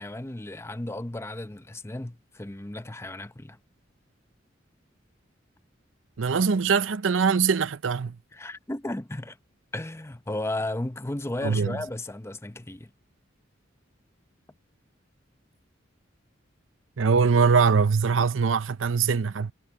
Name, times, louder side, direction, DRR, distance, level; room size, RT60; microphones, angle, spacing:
voice 1, 0.0-3.6 8.3-9.4 9.7-12.9, left 1 dB, 15° left, 0.8 m, -34 dB
voice 2, 6.2-8.2 11.4-11.8 17.0-19.5, right 5 dB, 85° right, 0.6 m, -22 dB
head